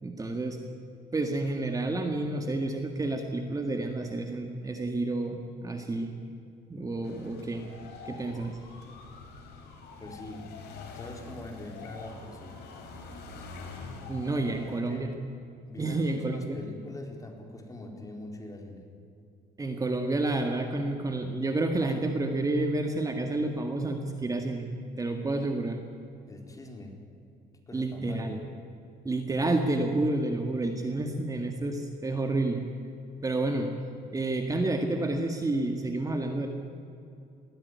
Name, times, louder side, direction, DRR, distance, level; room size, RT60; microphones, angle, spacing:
voice 1, 0.0-0.6 1.1-6.1 6.7-7.7 8.1-8.6 14.1-15.1 15.8-16.6 19.6-24.7 25.0-25.8 27.7-28.4 29.1-32.7 33.2-33.7 34.1-36.5, right 2 dB, 20° right, 4 dB, 1.9 m, -30 dB
sound 1, 7.0-14.8, left 4 dB, 75° left, 4.4 m, -45 dB
voice 2, 10.0-10.5 10.9-12.6 14.4-15.1 15.7-18.8 26.3-27.0 27.7-28.4, left 1 dB, 20° left, 2 dB, 4.3 m, -43 dB
21.5 x 16.0 x 9.6 m, 2.6 s
cardioid pair, 110°, 17 cm